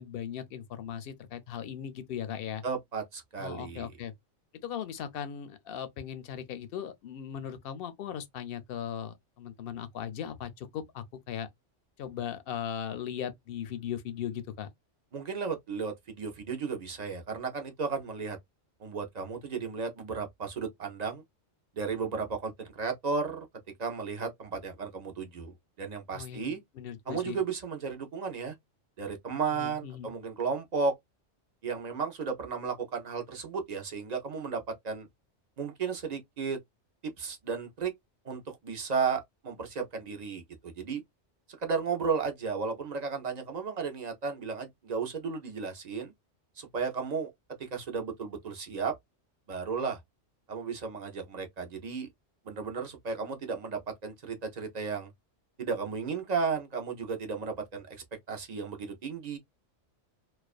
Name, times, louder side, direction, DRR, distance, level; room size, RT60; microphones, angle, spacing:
voice 1, 0.0-2.6 3.4-4.1 4.6-11.5 12.0-14.7 26.1-27.4 29.5-30.1, left 9 dB, 60° left, 0.6 m, -38 dB
voice 2, 2.6-3.9 15.1-18.4 18.8-21.2 21.8-23.5 23.8-26.6 27.1-28.5 29.0-30.9 31.6-35.1 35.6-36.6 37.0-37.9 38.2-41.0 41.6-46.1 46.6-47.3 47.6-48.9 49.5-50.0 50.5-52.1 52.4-55.1 55.6-59.4, right 5 dB, 50° right, 0.5 m, -34 dB
2.4 x 2.2 x 2.3 m
omnidirectional pair, 1.2 m